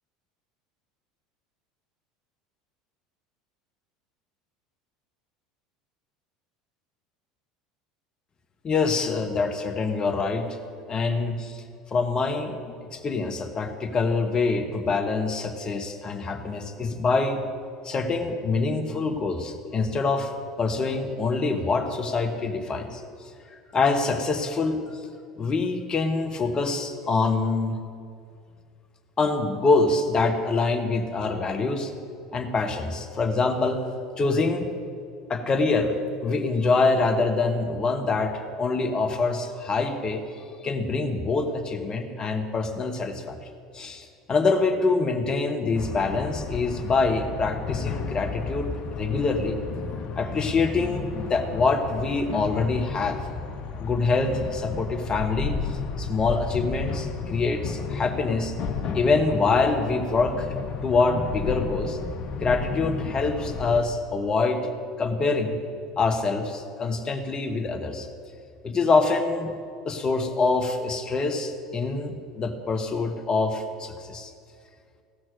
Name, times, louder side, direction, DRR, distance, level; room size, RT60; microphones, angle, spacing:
voice 1, 8.6-10.5 10.9-11.6 11.9-17.4 17.8-20.3 20.6-23.0 23.7-24.8 25.4-27.8 29.2-31.9 32.3-33.8 34.2-34.7 35.3-40.2 40.6-43.4 43.7-49.6 50.1-53.2 53.8-58.5 58.9-60.5 60.8-62.0 62.4-64.7 65.0-65.5 66.0-68.1 68.6-69.5 69.8-74.3, left 3 dB, 30° left, 6 dB, 1.3 m, -25 dB
sound 1, 45.7-63.8, left 5 dB, 50° left, 0.9 m, -33 dB
16.0 x 6.1 x 6.3 m, 2.3 s
hypercardioid pair, 75°, 3 cm